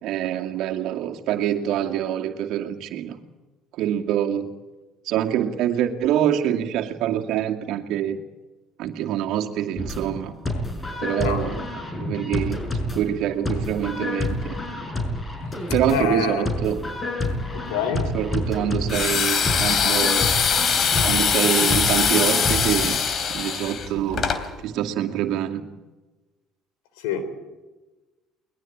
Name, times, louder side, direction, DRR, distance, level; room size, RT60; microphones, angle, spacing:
voice 1, 0.0-3.2 3.7-4.5 5.0-8.2 8.8-10.3 11.0-11.6 11.9-14.6 15.7-16.8 18.1-20.3 21.0-23.0 23.3-24.3 24.6-25.6, right 10 dB, 70° right, 4 dB, 2.5 m, -25 dB
sound 1, 9.8-23.0, left 1 dB, 20° left, 6.2 m, -29 dB
voice 2, 15.9-16.5 17.5-18.2 27.0-27.2, left 6 dB, 85° left, 11 dB, 3.6 m, -26 dB
sound 2, 18.9-24.4, left 6 dB, 50° left, 3.3 m, -22 dB
22.5 x 21.0 x 8.8 m, 1.2 s
supercardioid pair, 85°, 0 cm